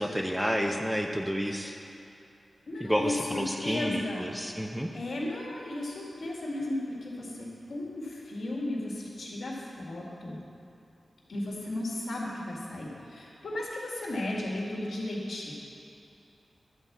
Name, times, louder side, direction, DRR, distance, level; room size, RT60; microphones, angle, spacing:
voice 1, 0.0-1.8 2.8-4.9, equal, 5° right, 3 dB, 0.6 m, -30 dB
voice 2, 2.7-4.2 4.9-6.8 7.0-7.2 7.7-7.9 8.3-8.9 9.2-9.5 9.8-10.4 11.3-12.9 13.4-13.7 14.0-15.5, left 1 dB, 70° left, -3 dB, 2.1 m, -34 dB
11.0 x 4.6 x 7.3 m, 2.7 s
wide cardioid pair, 85°, 0 cm